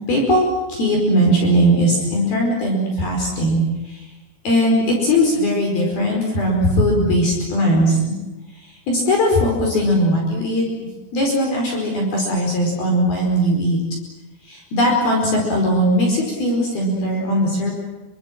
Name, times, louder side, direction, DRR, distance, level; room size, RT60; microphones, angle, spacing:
voice 1, 0.1-3.6 4.4-8.0 8.9-10.6 11.1-13.8 14.5-17.7, equal, 50° left, 0 dB, 6.6 m, -19 dB
28.0 x 25.5 x 7.8 m, 1.1 s
omnidirectional pair, 5.9 m